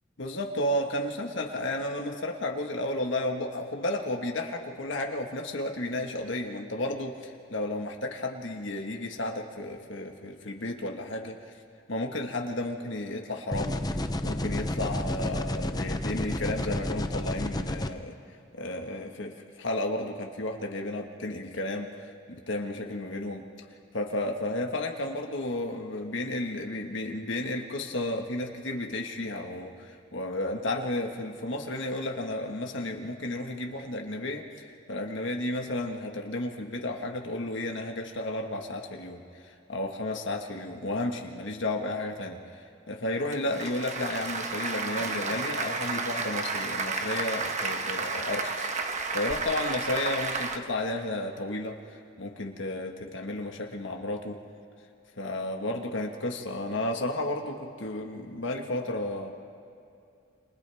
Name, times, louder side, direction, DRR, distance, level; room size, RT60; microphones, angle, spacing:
voice 1, 0.2-11.4 11.9-14.0 14.2-18.1 18.5-23.4 23.9-42.4 42.9-54.4 55.2-59.3, left 1 dB, 75° left, 2 dB, 1.6 m, -33 dB
sound 1, 13.5-17.9, left 1 dB, 20° left, 0.7 m, -31 dB
Applause, 43.2-50.6, right 4 dB, 40° right, 1.1 m, -32 dB
29.0 x 27.5 x 3.5 m, 2.6 s
head